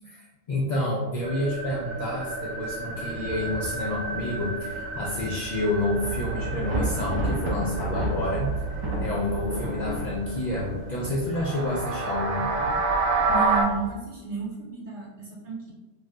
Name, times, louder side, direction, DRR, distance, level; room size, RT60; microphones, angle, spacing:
voice 1, 0.5-12.5, left 2 dB, 70° left, -5 dB, 0.4 m, -29 dB
sound 1, 1.2-13.6, right 4 dB, 90° right, 1.0 m, -30 dB
Thunder / Rain, 3.1-13.9, equal, 40° right, 0.3 m, -36 dB
voice 2, 13.3-15.7, right 4 dB, 65° right, -6 dB, 1.2 m, -33 dB
2.4 x 2.2 x 3.7 m, 1.1 s
omnidirectional pair, 1.3 m